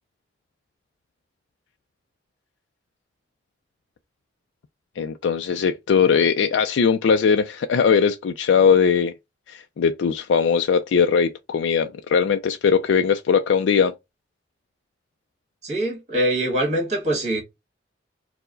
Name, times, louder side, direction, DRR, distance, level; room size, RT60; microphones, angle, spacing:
voice 1, 5.0-9.1 9.5-13.9, left 6 dB, 85° left, 0.4 m, -20 dB
voice 2, 15.6-17.4, right 1 dB, 40° right, 1.7 m, -23 dB
4.5 x 2.1 x 3.8 m
head